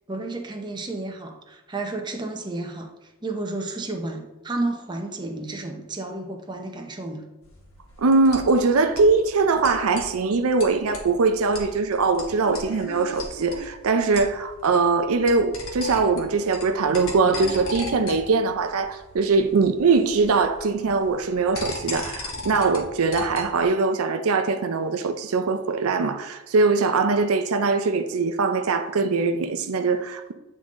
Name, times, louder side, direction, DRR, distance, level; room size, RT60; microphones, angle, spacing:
voice 1, 0.1-7.2, right 2 dB, 20° right, 0.8 m, -32 dB
sound 1, 7.4-23.6, left 2 dB, 65° left, 1.4 m, -38 dB
voice 2, 8.0-30.3, right 4 dB, 75° right, 0.5 m, -22 dB
8.8 x 3.8 x 3.7 m
head